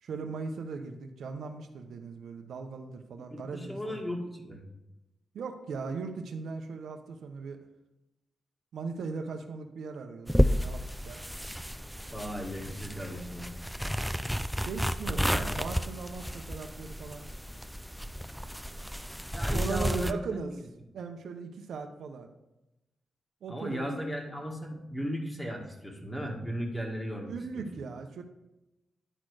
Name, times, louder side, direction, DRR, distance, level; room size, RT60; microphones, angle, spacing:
voice 1, 0.0-4.0 5.3-7.6 8.7-11.2 14.6-17.3 19.5-20.5 20.9-22.3 23.4-23.9 27.3-28.2, right 5 dB, 80° right, 5 dB, 0.7 m, -38 dB
voice 2, 3.3-4.6 12.1-13.5 15.0-15.5 19.3-20.4 23.5-27.6, equal, 15° left, 0 dB, 1.9 m, -36 dB
sound 1, 10.3-20.1, equal, ahead, 0.4 m, -32 dB
10.0 x 4.3 x 4.8 m, 0.96 s
cardioid pair, 70°, 0 cm